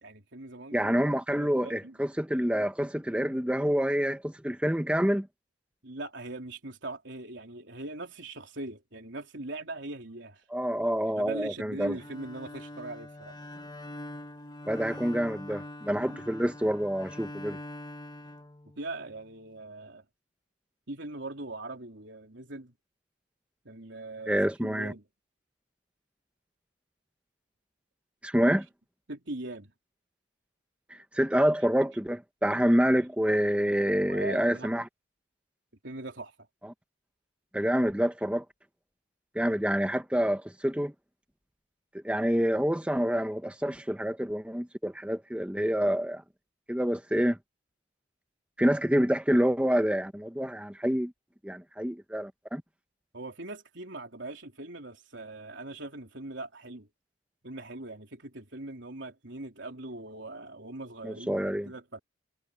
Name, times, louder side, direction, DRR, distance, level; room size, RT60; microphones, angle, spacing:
voice 1, 0.0-1.0 1.3-2.0 5.8-10.4 11.2-13.4 16.0-16.2 18.8-20.1 20.9-22.7 23.7-25.0 29.1-29.7 34.1-34.7 35.8-36.4 53.1-56.9 57.4-62.0, right 2 dB, 70° right, 3.6 m, -41 dB
voice 2, 0.7-5.3 10.5-12.0 14.7-17.6 24.3-24.9 28.2-28.6 30.9-34.8 37.5-38.4 39.3-40.9 42.0-46.2 46.7-47.4 48.6-51.1 51.4-52.6 61.0-61.7, equal, 5° right, 0.9 m, -27 dB
Bowed string instrument, 11.9-19.1, left 1 dB, 20° left, 1.0 m, -43 dB
head